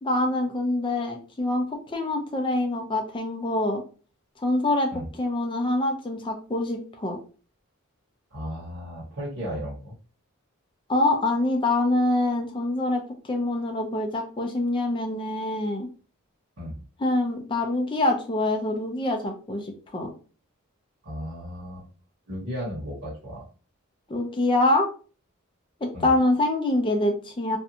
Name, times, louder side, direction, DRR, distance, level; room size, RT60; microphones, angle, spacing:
voice 1, 0.0-3.8 4.4-7.2 10.9-15.9 17.0-20.1 24.1-24.9 25.8-27.6, left 2 dB, 20° left, 3 dB, 0.4 m, -25 dB
voice 2, 8.3-9.9 16.6-16.8 21.0-21.9 22.3-23.4 25.9-26.1, equal, 60° right, -6 dB, 1.1 m, -35 dB
2.5 x 2.2 x 2.7 m, 0.38 s
head